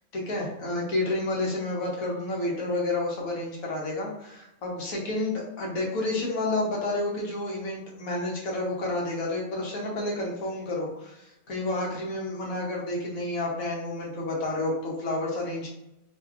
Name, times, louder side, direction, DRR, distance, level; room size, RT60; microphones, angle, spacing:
voice 1, 0.1-15.7, left 2 dB, 90° left, -2 dB, 1.4 m, -30 dB
4.1 x 2.7 x 2.4 m, 0.88 s
omnidirectional pair, 1.4 m